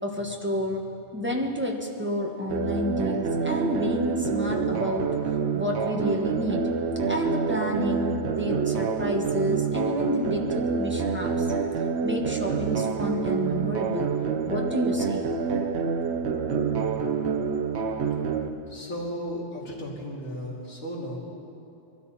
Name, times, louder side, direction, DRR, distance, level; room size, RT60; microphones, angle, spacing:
voice 1, 0.0-5.0 5.5-6.7 7.1-11.5 12.0-14.1 14.4-15.2, left 1 dB, 10° right, 0 dB, 1.3 m, -30 dB
sound 1, 2.5-18.5, right 5 dB, 60° right, 1.0 m, -27 dB
voice 2, 18.7-21.2, equal, 80° left, -5 dB, 3.2 m, -35 dB
22.5 x 13.0 x 4.2 m, 2.7 s
omnidirectional pair, 1.3 m